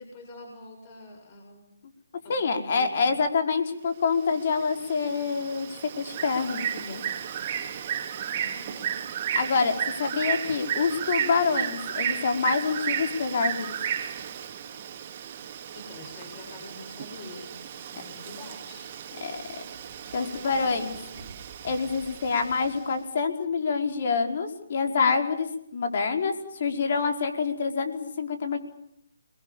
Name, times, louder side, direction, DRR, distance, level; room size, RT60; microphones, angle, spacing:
voice 1, 0.0-1.6 2.2-3.2 8.3-9.0 15.7-18.9 20.2-21.4, left 2 dB, 25° left, 3 dB, 6.7 m, -46 dB
voice 2, 2.3-7.0 9.3-9.7 10.0-13.8 19.2-19.4 20.1-21.0 21.6-28.6, left 5 dB, 45° left, 6 dB, 5.1 m, -26 dB
Bird, 4.1-22.8, right 9 dB, 35° right, 3.1 m, -34 dB
30.0 x 22.5 x 7.3 m, 0.74 s
hypercardioid pair, 160°, 0 cm